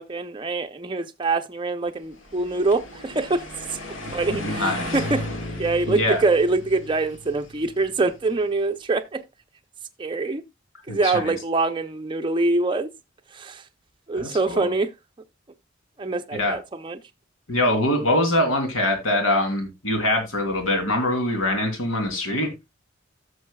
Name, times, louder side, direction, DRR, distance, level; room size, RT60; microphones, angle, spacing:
voice 1, 0.0-3.5 4.1-5.3 5.6-9.2 10.0-10.4 10.9-12.9 13.3-13.6 14.1-14.9 16.0-17.0, right 3 dB, 25° right, 0.5 m, -24 dB
sound 1, 2.2-8.3, left 1 dB, 70° left, 1.8 m, -35 dB
voice 2, 4.3-5.0 5.9-6.2 10.9-11.3 14.1-14.7 16.3-16.6 17.5-22.5, left 1 dB, 90° left, 3.0 m, -23 dB
15.5 x 6.4 x 2.3 m
head